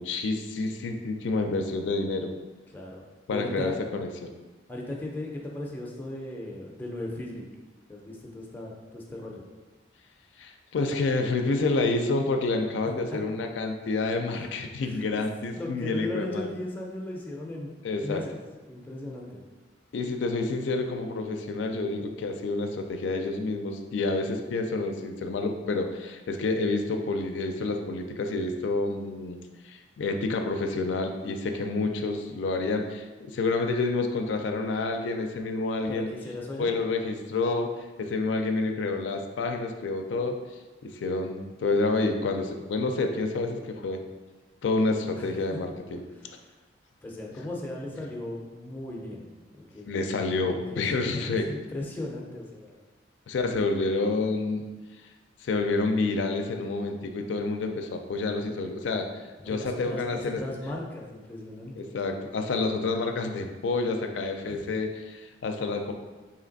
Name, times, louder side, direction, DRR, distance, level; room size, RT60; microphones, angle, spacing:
voice 1, 0.0-2.3 3.3-4.3 10.4-16.5 17.8-18.2 19.9-29.4 29.6-36.1 36.6-40.4 40.8-44.0 44.6-46.0 49.9-51.5 53.3-54.6 55.4-60.4 61.8-65.9, left 3 dB, 75° left, 4 dB, 0.4 m, -28 dB
voice 2, 2.7-3.0 3.3-3.8 4.7-7.5 7.9-9.4 13.4-13.5 14.4-14.5 14.8-15.2 15.5-17.7 18.0-19.4 35.9-36.7 45.2-45.3 46.1-46.6 47.0-49.3 49.6-50.1 50.4-52.8 59.4-61.9 64.5-64.7, left 1 dB, 10° left, -2 dB, 0.5 m, -37 dB
3.2 x 2.8 x 3.9 m, 1.2 s
head